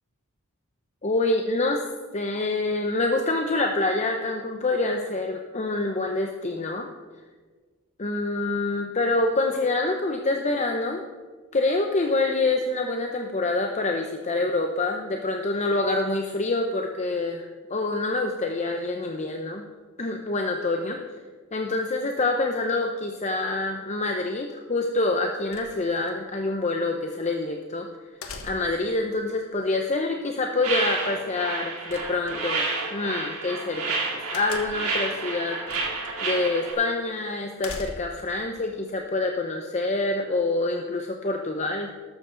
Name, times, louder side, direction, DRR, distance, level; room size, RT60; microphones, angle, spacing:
voice 1, 1.0-1.8 2.1-6.9 8.0-11.0 11.5-19.6 20.0-21.0 21.5-27.9 28.4-34.0 34.3-35.6 36.2-41.9, left 2 dB, 30° left, 3 dB, 0.7 m, -26 dB
sound 1, 25.5-26.1 28.2-28.9 31.9-32.6 34.3-35.0 35.7-36.1 36.5-36.6 37.6-38.3, left 3 dB, 75° left, 1.4 m, -40 dB
sound 2, 30.6-36.7, right 3 dB, 80° right, 3.1 m, -30 dB
13.0 x 12.5 x 3.9 m, 1.4 s
head